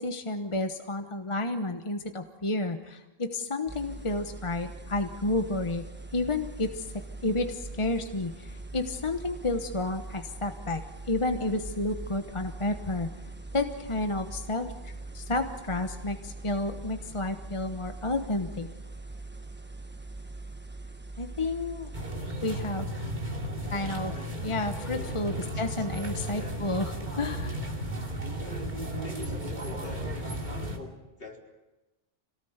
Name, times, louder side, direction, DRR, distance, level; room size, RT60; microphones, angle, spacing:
voice 1, 0.0-5.8 6.1-6.9 7.2-10.8 11.1-13.1 13.5-18.7 21.2-21.9 22.4-22.9 23.7-24.1 24.4-27.6, left 2 dB, 30° left, 7 dB, 1.1 m, -31 dB
sound 1, 3.7-22.1, right 2 dB, 10° right, 1.1 m, -42 dB
sound 2, 21.9-30.8, right 1 dB, 45° right, 3.0 m, -34 dB
voice 2, 23.6-24.4 25.0-26.6 28.3-28.7 29.0-31.4, left 1 dB, 65° left, 0 dB, 4.2 m, -46 dB
26.0 x 18.0 x 8.0 m, 1.1 s
omnidirectional pair, 1.1 m